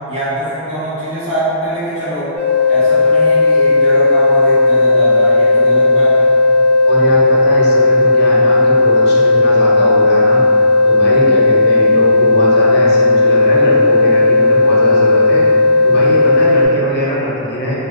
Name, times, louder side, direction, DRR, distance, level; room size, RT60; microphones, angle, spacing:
voice 1, 0.1-2.3 2.7-6.3, equal, 85° right, -14 dB, 0.9 m, -22 dB
sound 1, 2.4-16.7, left 2 dB, 25° right, 0.6 m, -12 dB
voice 2, 6.8-10.4 10.8-15.4 15.8-17.8, left 1 dB, 50° left, -5 dB, 0.6 m, -20 dB
2.5 x 2.2 x 3.5 m, 2.9 s
head